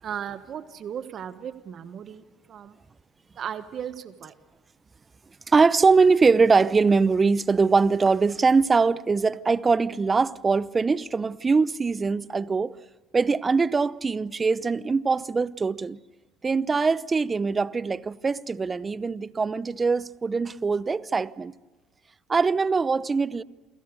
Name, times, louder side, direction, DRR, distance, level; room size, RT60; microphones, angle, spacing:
voice 1, 0.0-2.8 3.3-4.3, right 9 dB, 50° right, 1.4 m, -36 dB
voice 2, 5.5-12.7 13.1-16.0 16.4-21.5 22.3-23.4, right 4 dB, 25° right, 0.7 m, -22 dB
29.0 x 23.5 x 6.7 m
hypercardioid pair, 70°, 0 cm